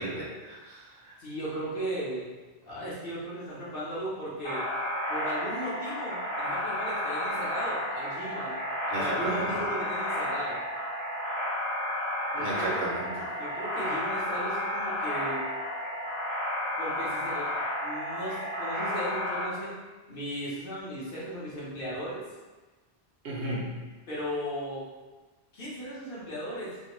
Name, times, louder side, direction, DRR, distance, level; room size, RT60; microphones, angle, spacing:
voice 1, 0.0-1.1 8.9-9.5 12.4-13.3 23.2-23.7, right 2 dB, 65° right, -4 dB, 0.7 m, -34 dB
voice 2, 1.2-2.2 2.6-4.6 5.1-8.6 8.9-10.6 12.3-12.9 13.4-15.4 16.8-17.5 17.8-19.7 20.1-22.2 23.4-23.6 24.1-24.8 25.5-26.7, equal, 55° left, -8 dB, 0.9 m, -36 dB
sound 1, 4.4-19.5, left 1 dB, 30° left, 0.6 m, -32 dB
2.5 x 2.2 x 2.9 m, 1.2 s
omnidirectional pair, 1.2 m